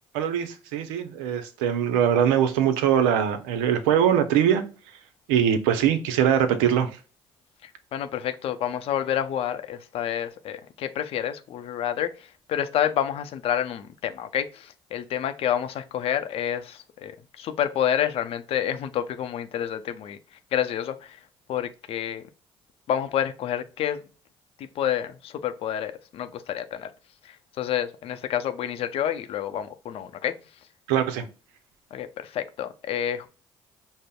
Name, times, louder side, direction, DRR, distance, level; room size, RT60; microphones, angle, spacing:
voice 1, 0.1-4.6 5.3-6.9 30.9-31.3, right 9 dB, 90° right, 0.5 m, -22 dB
voice 2, 7.6-20.2 20.5-21.2 21.5-22.2 22.9-24.0 24.6-26.9 27.2-30.4 31.9-33.3, left 10 dB, 65° left, 0.5 m, -29 dB
5.2 x 2.0 x 2.2 m
supercardioid pair, 70°, 11 cm